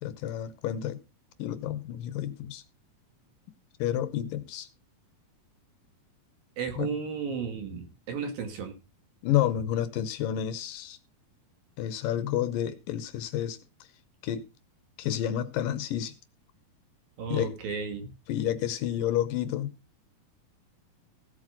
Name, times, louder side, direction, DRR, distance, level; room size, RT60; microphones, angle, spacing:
voice 1, 0.0-1.0 1.4-2.6 3.8-4.7 6.8-6.9 9.2-11.0 11.8-13.6 14.2-14.4 15.0-16.1 17.3-17.5 18.3-19.7, left 11 dB, 75° left, 2.3 m, -30 dB
voice 2, 6.6-8.7 17.2-18.1, right 6 dB, 70° right, 4.0 m, -34 dB
16.5 x 8.1 x 3.7 m
omnidirectional pair, 4.3 m